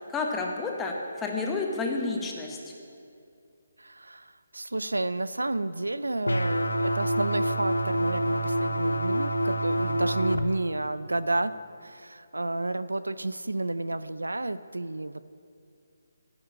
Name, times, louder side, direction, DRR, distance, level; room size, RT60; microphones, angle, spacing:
voice 1, 0.1-2.6, left 3 dB, 10° left, 0 dB, 1.2 m, -30 dB
voice 2, 3.8-15.2, right 2 dB, 90° right, 15 dB, 0.4 m, -31 dB
sound 1, 6.3-10.4, right 1 dB, 90° left, 0.6 m, -27 dB
10.0 x 6.0 x 8.7 m, 2.4 s
figure-of-eight pair, 150°, 0 cm